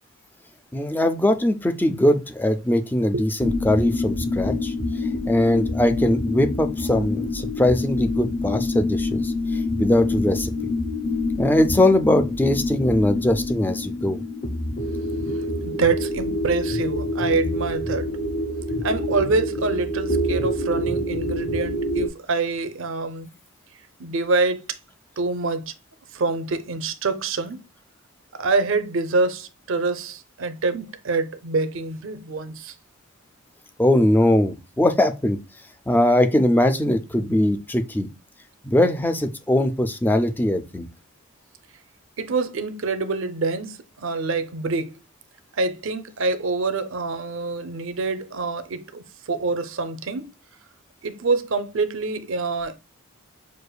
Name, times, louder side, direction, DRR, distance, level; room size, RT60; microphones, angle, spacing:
voice 1, 0.7-4.7 5.3-9.3 9.8-10.5 11.4-14.2 33.8-35.4 35.9-38.1 38.6-40.9, left 1 dB, 10° left, 0.3 m, -21 dB
sound 1, 3.4-22.1, left 1 dB, 40° left, 0.8 m, -26 dB
voice 2, 15.6-18.1 18.8-23.3 24.0-24.8 25.2-25.7 26.1-27.6 28.3-32.7 42.2-45.0 45.5-50.3 51.0-52.8, right 3 dB, 65° right, 0.5 m, -26 dB
6.5 x 2.5 x 2.2 m
head